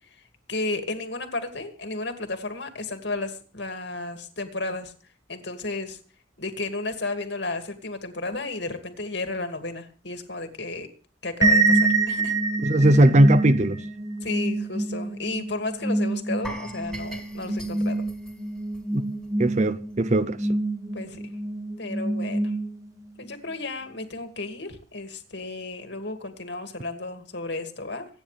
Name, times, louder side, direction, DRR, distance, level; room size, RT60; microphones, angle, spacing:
voice 1, 0.5-4.9 5.3-6.0 6.4-10.9 11.2-12.4 14.2-18.0 20.9-21.2 21.8-22.5 23.2-28.1, left 2 dB, 60° left, 2.5 m, -33 dB
sound 1, 11.4-23.0, right 2 dB, 20° right, 1.2 m, -26 dB
voice 2, 12.6-13.8 18.9-19.0 19.4-20.4, right 1 dB, 35° right, 0.7 m, -18 dB
sound 2, 16.4-19.4 19.7-19.9 20.4-20.5, right 1 dB, ahead, 2.7 m, -41 dB
25.5 x 9.8 x 3.4 m
head